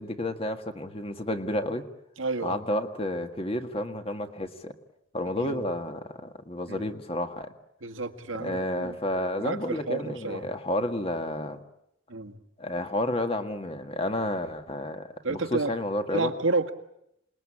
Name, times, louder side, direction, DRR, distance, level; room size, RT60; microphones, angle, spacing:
voice 1, 0.0-1.8 2.4-4.7 5.1-7.5 8.4-11.6 12.6-16.3, left 1 dB, 30° left, 7 dB, 1.8 m, -31 dB
voice 2, 2.2-2.6 5.4-5.6 6.7-6.9 7.8-9.0 9.4-10.4 12.1-12.4 15.2-15.7 16.1-16.7, right 3 dB, 90° right, 6 dB, 1.8 m, -30 dB
27.5 x 20.5 x 8.7 m, 0.79 s
head